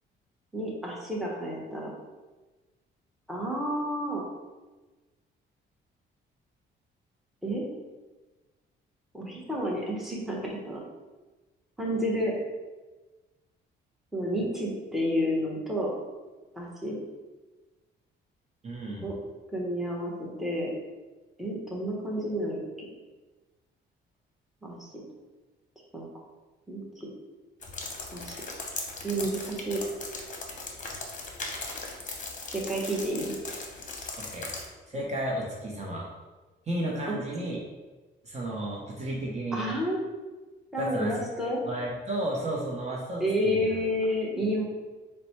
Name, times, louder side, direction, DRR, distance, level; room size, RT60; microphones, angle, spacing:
voice 1, 0.5-1.9 3.3-4.2 7.4-7.6 9.1-10.8 11.8-12.3 14.1-15.9 16.6-17.0 19.0-19.1 19.5-20.7 21.4-22.9 24.6-25.0 25.9-26.1 26.7-27.1 28.1-28.4 29.0-29.8 32.5-33.3 37.1-37.2 39.5-40.0 40.7-41.6 43.2-44.6, equal, ahead, -3 dB, 1.0 m, -30 dB
voice 2, 18.6-19.1 34.2-34.5 34.9-36.1 36.7-37.6 38.2-39.7 40.8-41.1 41.7-43.7, right 1 dB, 35° right, -3 dB, 0.8 m, -33 dB
sound 1, 27.6-34.7, left 3 dB, 40° left, 0.8 m, -38 dB
4.1 x 2.2 x 4.3 m, 1.2 s
cardioid pair, 90°, 20 cm